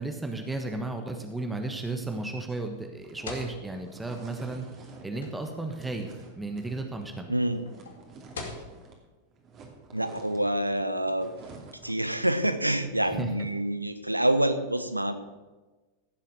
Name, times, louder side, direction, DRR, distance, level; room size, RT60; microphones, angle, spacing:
voice 1, 0.0-4.6 5.0-6.1 6.3-7.4 13.1-13.3, right 2 dB, 10° right, 4 dB, 1.4 m, -34 dB
sound 1, 2.7-9.1 9.3-12.0, right 3 dB, 30° right, 2.6 m, -50 dB
sound 2, 2.8-9.0, left 3 dB, 65° left, 2.3 m, -44 dB
voice 2, 7.3-7.6 9.9-11.3 11.8-15.1, right 1 dB, 85° right, 10 dB, 1.0 m, -27 dB
16.0 x 7.4 x 6.4 m, 1.2 s
figure-of-eight pair, 90°, 0 cm